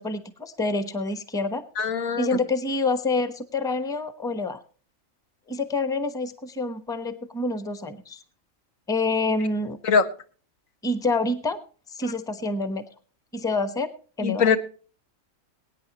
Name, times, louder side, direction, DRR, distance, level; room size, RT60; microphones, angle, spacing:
voice 1, 0.0-1.6 2.2-4.6 5.5-8.2 8.9-9.8 10.8-11.6 11.9-12.8 13.3-13.9 14.2-14.5, left 3 dB, 5° left, 11 dB, 0.8 m, -27 dB
voice 2, 1.8-2.3 9.8-10.0 14.2-14.6, left 6 dB, 75° left, 9 dB, 1.5 m, -21 dB
22.5 x 9.4 x 2.9 m, 0.40 s
omnidirectional pair, 1.4 m